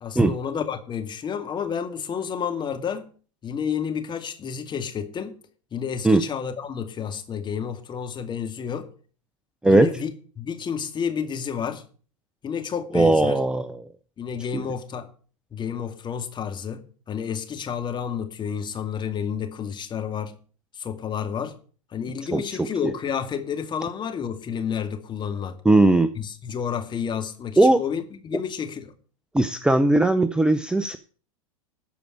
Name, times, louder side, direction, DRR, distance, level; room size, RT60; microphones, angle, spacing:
voice 1, 0.0-3.1 3.4-5.4 5.7-8.9 9.6-11.8 12.4-13.4 14.2-15.1 15.5-16.8 17.1-20.4 20.7-21.6 21.9-25.6 26.2-28.9, left 7 dB, 25° left, 2.3 m, -30 dB
voice 2, 12.9-13.8 14.5-14.6 22.3-22.4 25.6-26.1 27.6-27.8 29.3-31.0, right 2 dB, 5° right, 0.7 m, -18 dB
13.5 x 5.1 x 8.5 m
hypercardioid pair, 100°, 18 cm